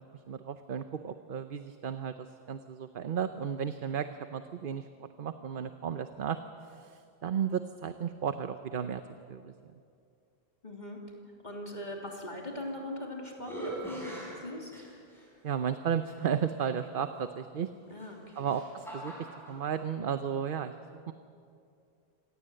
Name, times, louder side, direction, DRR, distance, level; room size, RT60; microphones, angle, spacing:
voice 1, 0.0-4.9 5.2-9.0 9.3-9.5 15.4-17.7 18.3-20.7 21.1-21.2, right 8 dB, 60° right, 9 dB, 0.9 m, -34 dB
voice 2, 10.6-11.0 11.4-14.8 17.9-18.5, left 1 dB, 45° left, 0 dB, 3.2 m, -41 dB
sound 1, 12.6-13.0 13.4-15.3 16.0-16.1 17.9-19.6, right 1 dB, ahead, 7.8 m, -42 dB
26.0 x 18.0 x 7.7 m, 2.4 s
omnidirectional pair, 1.0 m